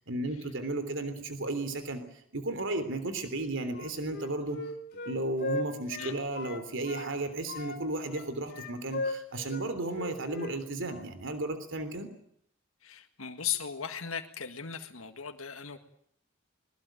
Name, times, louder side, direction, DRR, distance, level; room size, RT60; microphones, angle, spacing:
voice 1, 0.1-4.6 5.0-12.1, right 2 dB, 65° right, 10 dB, 3.4 m, -34 dB
Wind instrument woodwind instrument, 3.7-7.1 7.5-10.6 10.8-11.1, left 2 dB, 50° left, 3.5 m, -38 dB
voice 2, 12.8-15.8, left 8 dB, 80° left, 6 dB, 1.9 m, -37 dB
22.0 x 21.0 x 9.2 m, 0.68 s
head